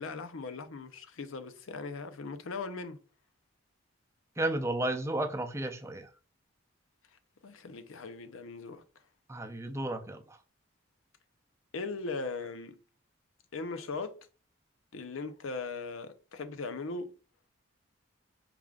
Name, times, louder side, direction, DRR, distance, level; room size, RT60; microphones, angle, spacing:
voice 1, 0.0-3.0 7.4-8.8 11.7-12.8 13.5-14.2 14.9-17.1, left 3 dB, 85° left, 0.7 m, -39 dB
voice 2, 4.4-6.1 9.3-10.4, right 1 dB, 15° right, 0.5 m, -33 dB
4.9 x 3.5 x 2.4 m
head